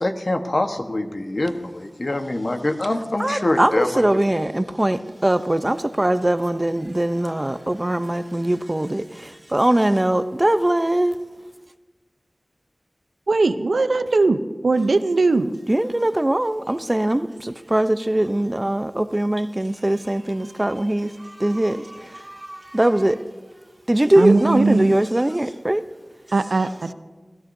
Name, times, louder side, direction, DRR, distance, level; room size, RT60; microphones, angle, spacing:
voice 1, 0.0-4.1, left 1 dB, 50° left, 5 dB, 1.2 m, -24 dB
voice 2, 3.2-11.2 15.7-23.2 23.9-25.8, right 1 dB, 25° right, 11 dB, 0.6 m, -21 dB
voice 3, 13.3-15.6 24.2-25.0 26.3-26.9, right 3 dB, 85° right, 10 dB, 0.6 m, -19 dB
26.0 x 16.0 x 2.7 m, 1.3 s
wide cardioid pair, 50°, 0 cm